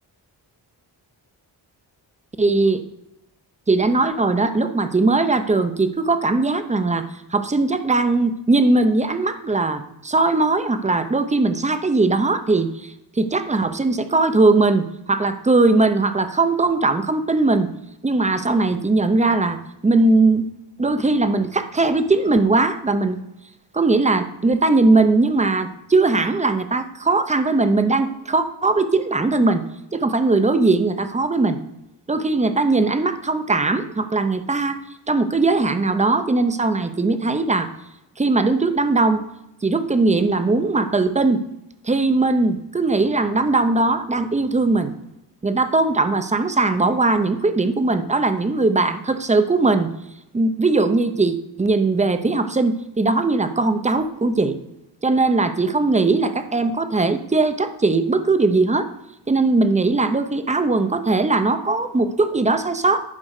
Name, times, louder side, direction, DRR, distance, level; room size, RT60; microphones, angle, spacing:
voice 1, 2.4-2.8 3.7-17.7 18.0-20.5 20.8-23.2 23.7-29.6 29.9-31.6 32.1-34.8 35.1-37.7 38.2-39.2 39.6-41.4 41.8-44.9 45.4-49.9 50.3-54.6 55.0-58.9 59.3-63.0, right 3 dB, 15° right, 10 dB, 0.7 m, -19 dB
11.0 x 5.2 x 6.5 m, 0.87 s
wide cardioid pair, 140°, 42 cm